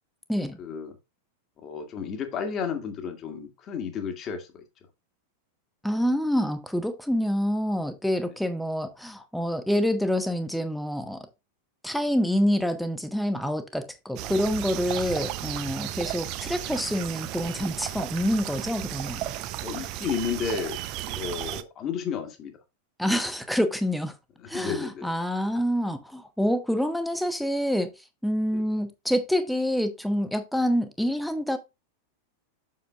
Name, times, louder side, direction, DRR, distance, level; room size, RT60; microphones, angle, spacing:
voice 1, 0.6-0.9 1.6-4.6 19.6-20.8 21.1-22.5 24.5-25.1 28.5-28.6, left 6 dB, 30° left, 1.9 m, -32 dB
voice 2, 5.8-11.3 11.8-19.2 23.0-24.1 24.5-27.9 28.2-31.6, equal, ahead, 1.0 m, -27 dB
sound 1, 14.2-21.6, right 14 dB, 40° right, 0.6 m, -34 dB
7.5 x 6.7 x 2.5 m
figure-of-eight pair, 90°, 0 cm